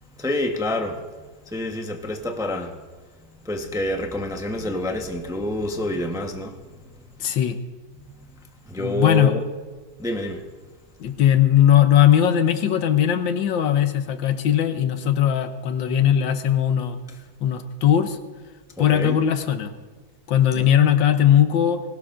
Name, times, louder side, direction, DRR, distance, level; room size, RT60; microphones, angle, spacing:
voice 1, 0.2-1.0 1.4-2.9 3.4-6.9 8.0-8.1 8.7-9.4 10.0-10.4 18.8-19.2 20.6-20.7, left 1 dB, 5° right, 3 dB, 0.7 m, -28 dB
voice 2, 7.2-7.6 8.8-9.3 11.0-17.0 17.4-18.2 18.8-19.7 20.3-21.8, left 10 dB, 85° left, 9 dB, 1.6 m, -19 dB
20.5 x 18.0 x 2.6 m, 1.4 s
omnidirectional pair, 2.0 m